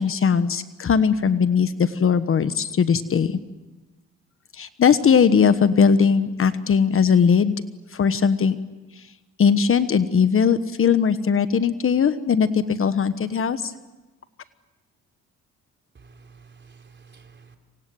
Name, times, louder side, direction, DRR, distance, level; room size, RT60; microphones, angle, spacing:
voice 1, 0.0-3.3 4.6-7.5 7.9-8.6 9.4-13.7, left 6 dB, 45° left, 12 dB, 1.3 m, -19 dB
voice 2, 15.9-17.6, right 5 dB, 40° right, 5 dB, 3.7 m, -50 dB
27.0 x 25.5 x 7.8 m, 1.1 s
cardioid pair, 90°, 30 cm